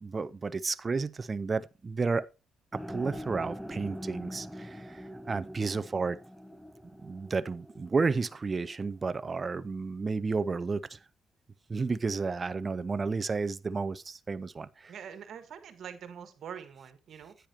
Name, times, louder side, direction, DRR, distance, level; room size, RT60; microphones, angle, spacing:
voice 1, 0.0-2.2 2.7-6.2 7.0-11.0 11.7-14.9, right 4 dB, 30° right, 0.5 m, -32 dB
sound 1, 2.7-8.9, equal, ahead, 0.8 m, -43 dB
voice 2, 14.9-17.3, right 8 dB, 65° right, 1.6 m, -44 dB
10.0 x 9.0 x 2.9 m
cardioid pair, 90°, 0 cm